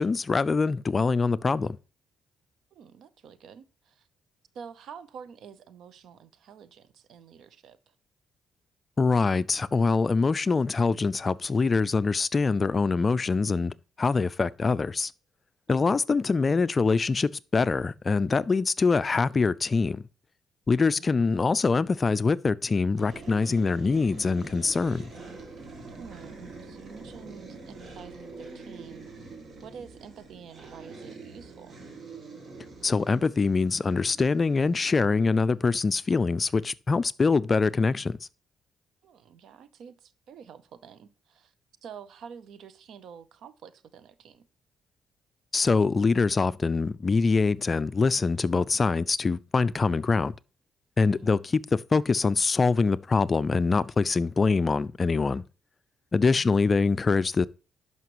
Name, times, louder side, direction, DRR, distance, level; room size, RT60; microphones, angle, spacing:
voice 1, 0.0-1.8 9.0-15.1 15.7-20.0 20.7-25.1 32.8-38.2 45.5-50.3 51.0-55.4 56.1-57.5, left 4 dB, 35° left, 0.3 m, -24 dB
voice 2, 2.7-4.1 4.5-8.0 20.9-21.2 26.0-29.1 29.6-31.8 39.0-41.5 41.8-44.5 51.2-51.4 56.3-56.5, right 7 dB, 70° right, 0.7 m, -48 dB
sound 1, 23.0-35.9, right 3 dB, 50° right, 2.3 m, -45 dB
11.0 x 5.6 x 3.0 m
cardioid pair, 90°, 0 cm